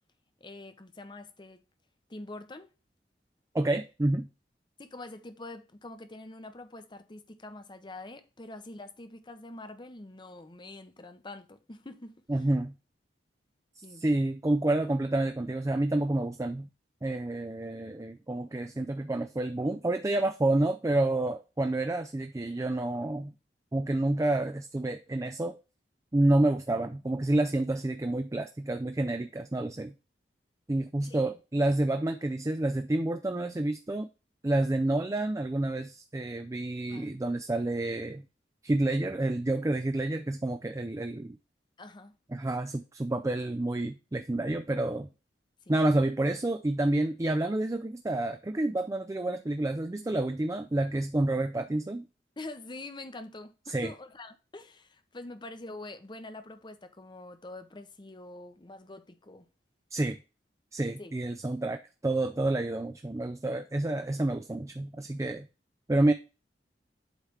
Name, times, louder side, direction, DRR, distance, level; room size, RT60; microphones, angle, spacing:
voice 1, 0.4-1.6 2.1-2.7 4.8-12.2 13.8-14.0 31.0-31.2 36.9-37.1 41.8-42.2 45.7-45.8 52.4-59.5 61.0-61.1, left 2 dB, 25° left, 0.8 m, -45 dB
voice 2, 3.5-4.3 12.3-12.7 13.8-16.7 17.0-23.3 23.7-25.6 26.1-29.9 30.7-34.1 34.4-38.2 38.6-41.4 42.3-45.1 45.7-52.1 53.7-53.9 59.9-60.2 60.7-65.5 65.9-66.1, right 2 dB, 20° right, 0.4 m, -29 dB
8.1 x 3.3 x 5.7 m
head